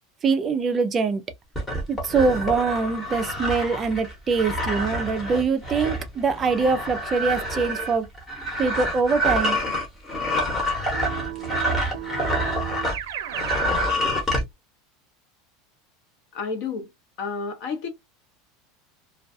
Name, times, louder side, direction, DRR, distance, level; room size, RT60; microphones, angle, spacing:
voice 1, 0.2-1.2 1.9-8.1 8.6-9.6, right 4 dB, 20° right, 0.4 m, -23 dB
sound 1, 1.5-13.0 13.3-14.4, equal, 15° left, 1.0 m, -27 dB
Keyboard (musical), 10.9-13.7, right 12 dB, 85° right, 0.5 m, -35 dB
voice 2, 16.3-16.9 17.2-17.9, left 5 dB, 55° left, 0.9 m, -30 dB
2.3 x 2.3 x 2.5 m
supercardioid pair, 165°, 0 cm